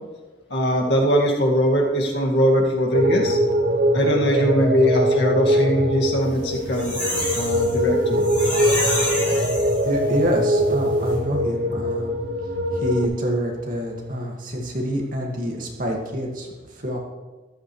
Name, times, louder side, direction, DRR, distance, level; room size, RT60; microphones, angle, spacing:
voice 1, 0.5-3.4 3.9-6.9 7.3-8.2, equal, 70° left, -1 dB, 2.1 m, -21 dB
sound 1, 2.9-13.1, equal, 65° right, 1.0 m, -22 dB
sliding foley, 6.3-10.2 10.6-10.7 10.9-11.1, left 1 dB, 10° left, 4.7 m, -28 dB
voice 2, 9.8-12.1 12.7-17.0, equal, 50° right, -1 dB, 2.1 m, -27 dB
14.0 x 11.5 x 3.3 m, 1.2 s
head